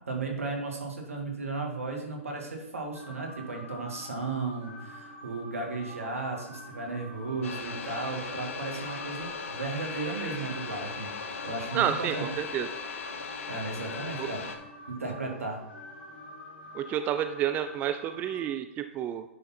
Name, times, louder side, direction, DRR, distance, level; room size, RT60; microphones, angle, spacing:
voice 1, 0.1-12.3 13.5-14.4 14.9-15.6, right 3 dB, 80° right, 1 dB, 2.0 m, -35 dB
sound 1, 2.9-18.5, left 1 dB, 50° left, 1.7 m, -47 dB
sound 2, 7.4-14.6, left 5 dB, 70° left, 1.0 m, -38 dB
voice 2, 11.7-12.7 14.2-14.3 16.7-19.2, right 10 dB, 20° right, 9 dB, 0.4 m, -30 dB
10.0 x 3.8 x 4.3 m, 0.96 s
figure-of-eight pair, 120°, 7 cm